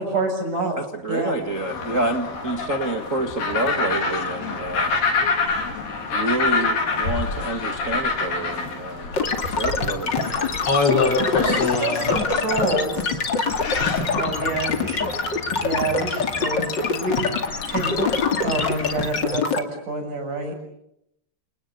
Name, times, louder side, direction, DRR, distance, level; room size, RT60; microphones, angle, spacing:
voice 1, 0.0-0.8 1.1-1.3 11.4-13.2 14.0-15.1 15.6-17.2 17.7-20.5, right 2 dB, 45° right, 4 dB, 8.2 m, -27 dB
voice 2, 0.7-4.9 6.1-10.6, right 2 dB, 75° right, 3 dB, 0.7 m, -28 dB
sound 1, 1.5-19.2, left 4 dB, 65° left, 6.3 m, -28 dB
sound 2, 9.1-19.6, left 4 dB, 35° left, 2.1 m, -24 dB
voice 3, 10.6-12.2, left 4 dB, 80° left, -3 dB, 7.3 m, -22 dB
28.5 x 28.0 x 6.9 m, 0.80 s
omnidirectional pair, 5.2 m